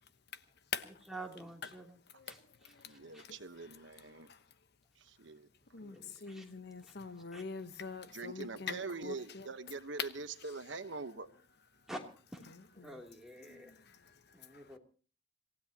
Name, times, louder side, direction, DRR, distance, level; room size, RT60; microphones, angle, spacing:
voice 1, 1.1-2.0 2.3-2.4 2.6-3.2 5.8-6.4 6.9-7.0 7.3-7.4 11.9-12.0 12.3-12.4 12.7-13.7 14.3-14.8, right 1 dB, ahead, 3.0 m, -48 dB
voice 2, 2.1-4.4 5.7-9.5 10.0-10.1 12.5-13.0 13.4-14.7, left 6 dB, 55° left, 1.1 m, -45 dB
voice 3, 2.9-4.3 5.0-5.5 8.1-11.3, right 3 dB, 70° right, 1.2 m, -43 dB
27.0 x 16.0 x 2.9 m
head